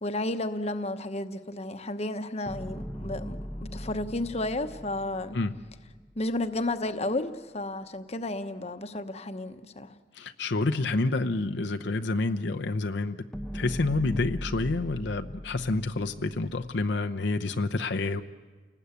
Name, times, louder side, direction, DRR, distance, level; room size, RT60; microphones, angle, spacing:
voice 1, 0.0-5.4 6.2-9.9, left 2 dB, 35° left, 9 dB, 1.0 m, -32 dB
sound 1, 2.5-6.7 13.3-17.1, equal, 5° left, 0.9 m, -40 dB
voice 2, 10.2-13.2 13.5-18.2, left 3 dB, 70° left, 5 dB, 0.8 m, -28 dB
29.5 x 19.5 x 8.3 m, 1.4 s
head